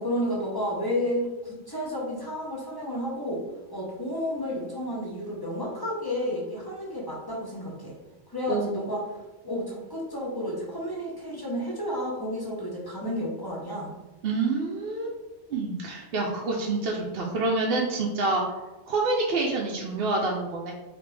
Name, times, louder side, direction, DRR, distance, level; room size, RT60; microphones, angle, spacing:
voice 1, 0.0-3.4 3.7-7.9 8.3-9.1 9.4-13.9, left 1 dB, 25° left, -4 dB, 0.6 m, -31 dB
voice 2, 8.5-8.9 14.2-15.1 15.5-18.4 18.9-20.7, right 3 dB, 65° right, -1 dB, 0.7 m, -27 dB
3.3 x 2.8 x 3.3 m, 1.1 s
omnidirectional pair, 1.2 m